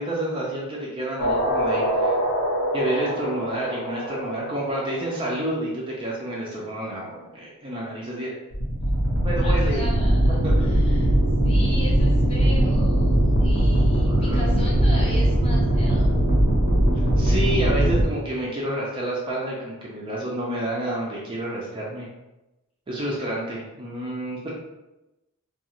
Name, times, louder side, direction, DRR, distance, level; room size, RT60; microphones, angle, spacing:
voice 1, 0.0-2.1 2.7-8.3 9.2-9.8 10.4-10.5 13.9-15.1 17.2-22.1 22.9-24.5, right 1 dB, 25° right, -4 dB, 0.4 m, -29 dB
sound 1, 1.2-5.1 8.5-18.0, right 1 dB, 75° left, 0.8 m, -21 dB
voice 2, 9.4-10.3 10.6-11.1 11.4-16.1, equal, 25° left, -4 dB, 0.7 m, -37 dB
2.4 x 2.3 x 2.9 m, 0.98 s
head